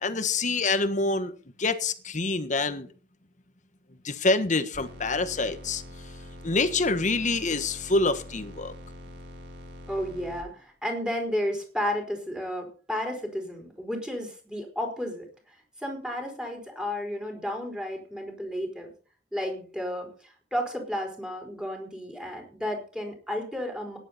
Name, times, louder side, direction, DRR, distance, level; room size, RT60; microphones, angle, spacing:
voice 1, 0.0-1.3 1.6-2.9 4.0-5.8 6.4-8.7, left 3 dB, 45° left, 10 dB, 1.4 m, -26 dB
sound 1, 4.7-10.4, left 1 dB, 65° right, 4.2 m, -44 dB
voice 2, 9.9-18.9 19.3-24.0, equal, 5° right, 2 dB, 4.7 m, -33 dB
17.0 x 11.0 x 4.3 m, 0.40 s
head